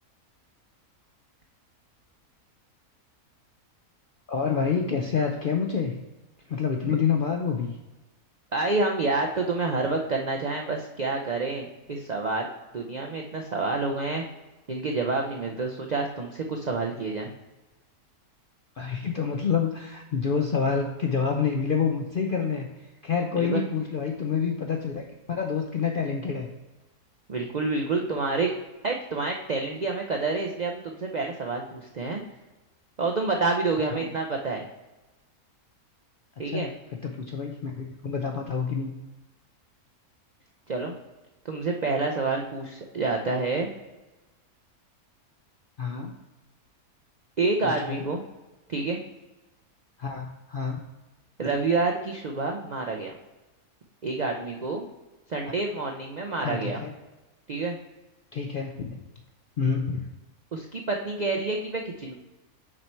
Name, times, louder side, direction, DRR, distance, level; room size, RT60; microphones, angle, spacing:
voice 1, 4.3-6.0 6.5-7.8 18.8-22.7 23.0-25.0 25.3-26.5 33.9-34.1 36.5-36.7 37.0-38.9 45.8-46.1 47.6-48.0 50.0-50.8 55.5-55.6 56.4-56.9 58.3-58.9 59.6-60.1, left 6 dB, 65° left, 2 dB, 0.5 m, -27 dB
voice 2, 8.5-12.5 12.7-14.2 14.7-17.3 23.4-23.6 27.3-28.5 28.8-32.2 33.0-34.6 36.4-36.7 40.7-41.0 41.4-43.7 47.4-48.2 48.7-49.0 51.4-53.1 54.0-54.9 55.3-56.8 57.5-57.8 60.5-62.1, right 3 dB, 60° right, 1 dB, 0.4 m, -28 dB
6.4 x 4.5 x 4.4 m, 1.1 s
omnidirectional pair, 1.6 m